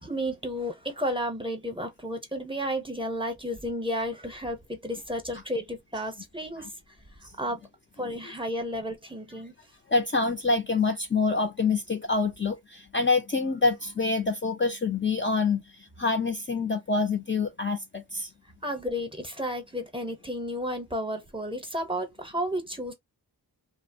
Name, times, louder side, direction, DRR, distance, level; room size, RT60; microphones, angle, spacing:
voice 1, 0.0-6.7 7.4-7.6 8.0-9.6 18.6-22.9, equal, 10° right, 0.7 m, -32 dB
voice 2, 9.9-18.3, left 4 dB, 30° left, 0.4 m, -26 dB
2.7 x 2.1 x 2.6 m
wide cardioid pair, 80°, 42 cm